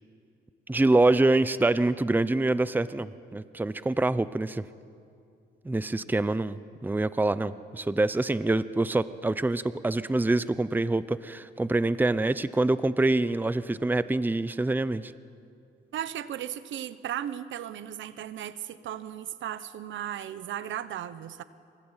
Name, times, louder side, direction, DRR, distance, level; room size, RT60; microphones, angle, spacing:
voice 1, 0.7-4.6 5.6-15.1, right 2 dB, 10° right, 15 dB, 0.8 m, -25 dB
voice 2, 15.9-21.4, right 10 dB, 75° right, 14 dB, 1.2 m, -36 dB
26.5 x 23.0 x 9.0 m, 2.4 s
cardioid pair, 90°, 20 cm